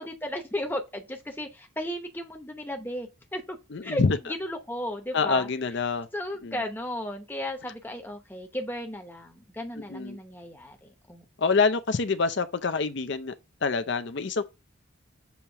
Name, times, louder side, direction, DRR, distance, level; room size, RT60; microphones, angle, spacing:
voice 1, 0.0-3.6 3.8-4.0 4.4-5.5 6.1-11.2, left 1 dB, 10° left, 0.8 m, -35 dB
voice 2, 3.7-4.2 5.1-6.1 6.4-6.6 9.9-10.2 11.4-13.3 13.6-14.4, left 4 dB, 55° left, 0.5 m, -26 dB
7.1 x 2.9 x 4.5 m
head